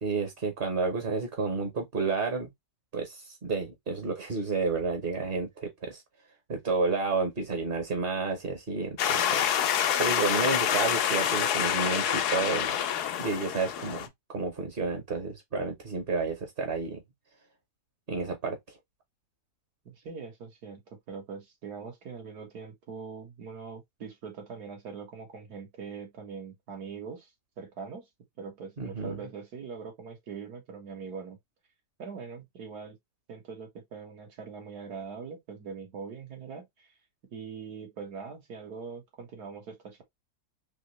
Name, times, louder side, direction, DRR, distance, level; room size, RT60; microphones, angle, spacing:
voice 1, 0.0-2.5 2.9-6.0 6.5-9.5 10.0-12.8 13.2-17.0 18.1-18.8 28.8-29.2, right 4 dB, 40° right, 1.0 m, -31 dB
sound 1, 9.0-14.1, left 9 dB, 90° left, 1.2 m, -27 dB
voice 2, 19.9-20.8 21.1-27.3 27.6-28.1 28.4-31.4 32.0-33.0 33.3-36.9 37.3-40.0, right 5 dB, 80° right, 2.0 m, -42 dB
4.2 x 2.9 x 3.0 m
omnidirectional pair, 1.7 m